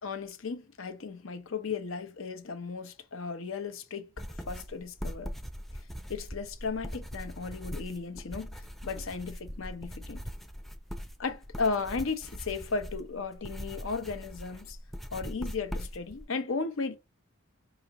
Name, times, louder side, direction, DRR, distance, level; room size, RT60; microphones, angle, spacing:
voice 1, 0.0-5.3 6.1-10.2 11.2-14.8 15.1-17.0, left 4 dB, 70° left, 0.7 m, -35 dB
sound 1, 4.2-16.2, equal, ahead, 0.3 m, -41 dB
4.9 x 2.5 x 2.9 m
head